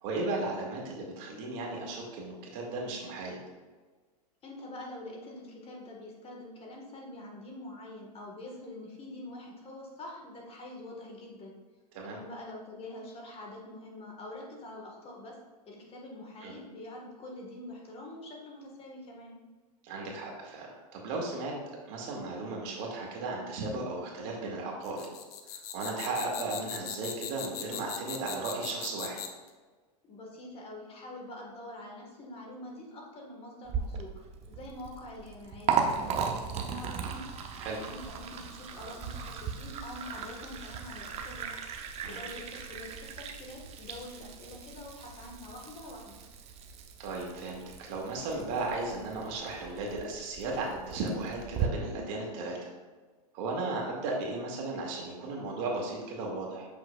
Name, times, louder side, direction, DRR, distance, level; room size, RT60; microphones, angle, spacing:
voice 1, 0.0-3.4 11.9-12.2 16.4-16.6 19.8-21.5 21.9-25.1 25.5-29.2 37.6-37.8 42.0-42.2 47.0-52.7 53.3-56.7, right 3 dB, 50° right, -1 dB, 1.9 m, -35 dB
voice 2, 4.4-11.6 12.0-15.4 15.6-19.4 30.0-34.1 34.5-37.2 37.7-41.5 42.1-46.1, left 1 dB, 30° left, -1 dB, 1.5 m, -45 dB
sound 1, 24.8-29.5, left 9 dB, 65° left, 0.8 m, -39 dB
Liquid, 33.6-51.7, right 6 dB, 30° right, 0.7 m, -37 dB
7.3 x 5.9 x 2.4 m, 1.4 s
hypercardioid pair, 115°, 20 cm